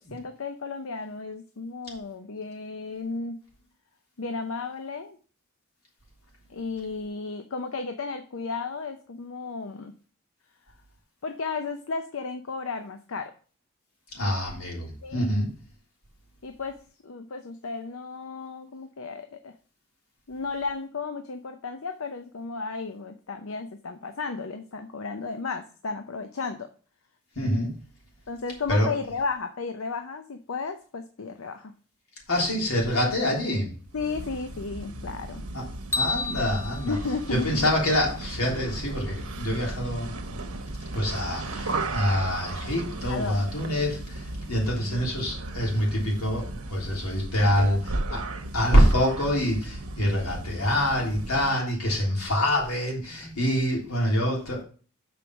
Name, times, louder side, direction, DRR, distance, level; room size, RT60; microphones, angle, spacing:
voice 1, 0.0-3.4 4.2-5.2 6.5-9.9 11.2-13.3 15.0-15.3 16.4-16.8 17.0-19.5 20.3-26.7 28.3-31.7 33.9-35.4 36.9-37.6 43.0-43.5 43.8-43.9 47.4-47.8 48.1-48.2, left 4 dB, 70° left, 7 dB, 0.6 m, -34 dB
voice 2, 14.1-15.5 27.4-27.7 28.7-28.9 32.3-33.7 35.5-35.7 35.9-36.9 37.3-40.1 40.9-47.8 48.1-48.2 48.5-54.6, equal, 85° left, -2 dB, 3.4 m, -25 dB
sound 1, 33.9-51.6, right 2 dB, 85° right, 1.1 m, -36 dB
sound 2, 35.9-38.2, left 3 dB, 10° left, 0.4 m, -32 dB
7.0 x 4.8 x 5.8 m, 0.40 s
head